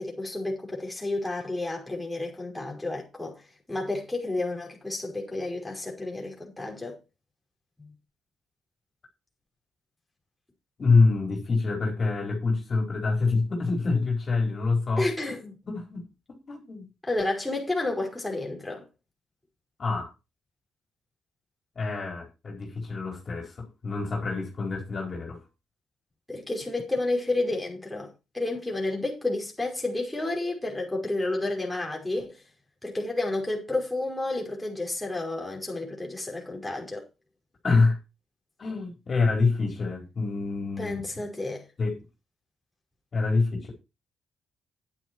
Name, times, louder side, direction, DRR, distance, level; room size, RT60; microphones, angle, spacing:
voice 1, 0.0-3.4 3.7-7.0 7.8-7.9 15.0-15.6 17.0-18.9 26.3-32.4 32.8-37.0 40.8-41.6, left 2 dB, 10° left, 5.3 m, -31 dB
voice 2, 10.8-15.1 15.7-16.0 16.5-16.9 19.8-20.1 21.7-25.4 37.6-38.0 38.6-41.0 41.8-42.0 43.1-43.7, left 3 dB, 40° left, 4.7 m, -26 dB
10.5 x 9.4 x 4.7 m
cardioid pair, 90°, 0 cm